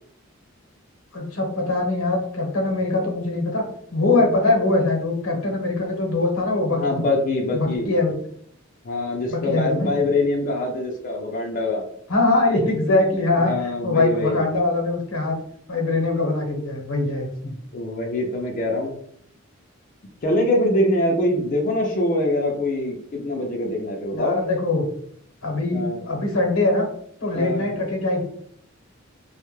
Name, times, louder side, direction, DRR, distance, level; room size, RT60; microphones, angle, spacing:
voice 1, 1.1-3.6 3.9-7.0 7.5-8.1 9.3-9.9 12.1-15.3 15.7-17.6 24.1-24.8 25.4-26.9 27.2-28.2, left 2 dB, 90° left, 1 dB, 0.8 m, -22 dB
voice 2, 6.7-7.9 8.8-11.8 13.4-14.4 17.7-19.0 20.2-24.4 25.7-26.0 27.3-27.6, left 1 dB, 40° left, 0 dB, 0.4 m, -24 dB
2.2 x 2.0 x 3.0 m, 0.66 s
head